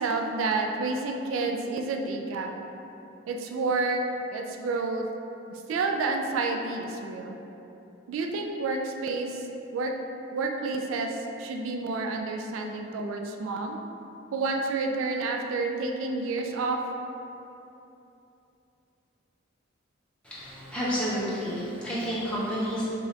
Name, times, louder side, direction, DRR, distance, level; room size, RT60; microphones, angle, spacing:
voice 1, 0.0-2.5 3.3-4.0 4.3-5.1 5.5-7.4 8.1-9.4 9.7-9.9 10.3-13.8 14.3-16.8, right 3 dB, 90° right, 2 dB, 0.3 m, -29 dB
voice 2, 20.2-22.8, equal, 5° left, -10 dB, 0.8 m, -30 dB
4.9 x 2.4 x 2.7 m, 2.9 s
head